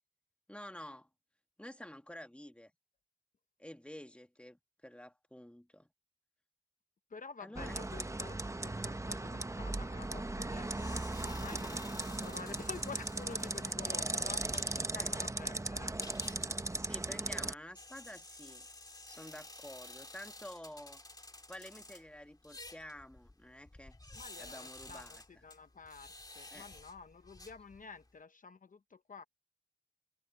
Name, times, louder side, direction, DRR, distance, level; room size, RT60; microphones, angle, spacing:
voice 1, 0.5-1.1 1.6-2.7 3.6-5.9 7.4-7.8 11.5-11.6 14.9-15.2 16.7-18.7 19.1-21.0 21.5-23.9 24.4-25.2 26.5-26.7, left 1 dB, 10° left, 2.0 m, -50 dB
voice 2, 7.1-15.9 24.2-29.2, left 5 dB, 65° left, 0.8 m, -50 dB
sound 1, 7.5-17.5, right 2 dB, 20° right, 0.8 m, -37 dB
sound 2, 10.6-28.1, left 2 dB, 25° left, 2.4 m, -53 dB
wide cardioid pair, 60°, 15 cm